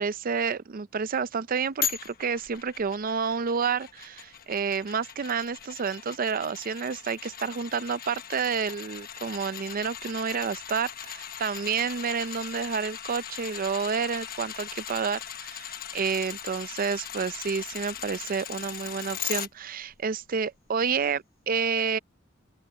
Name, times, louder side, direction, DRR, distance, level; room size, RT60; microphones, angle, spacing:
voice 1, 0.0-22.0, right 6 dB, 45° right, 0.5 m, -29 dB
sound 1, 1.8-19.5 19.9-20.0, left 9 dB, 50° left, 1.2 m, -39 dB
open air
head